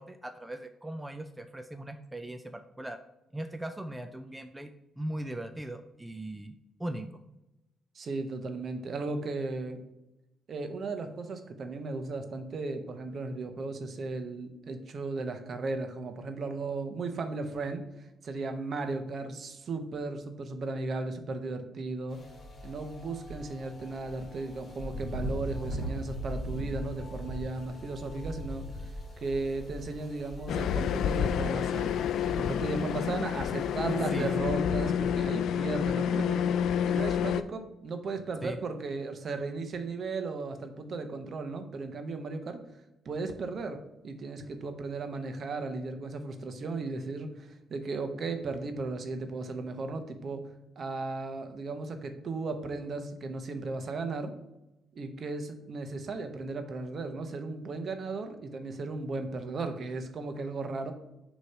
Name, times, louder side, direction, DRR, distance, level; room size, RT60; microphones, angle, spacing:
voice 1, 0.0-3.0 3.3-4.7 5.0-6.5 6.8-7.1 33.9-34.5 38.4-38.6, right 1 dB, 10° right, 7 dB, 0.4 m, -39 dB
voice 2, 7.9-9.8 10.5-22.2 22.6-28.7 29.2-36.5 36.8-42.6 43.0-50.4 50.8-54.3 54.9-60.9, right 3 dB, 50° right, 7 dB, 0.9 m, -36 dB
sound 1, 22.1-34.4, equal, 40° left, 2.0 m, -41 dB
sound 2, 30.5-37.4, left 8 dB, 75° left, 0.3 m, -29 dB
6.6 x 3.1 x 5.5 m, 0.94 s
cardioid pair, 90°, 0 cm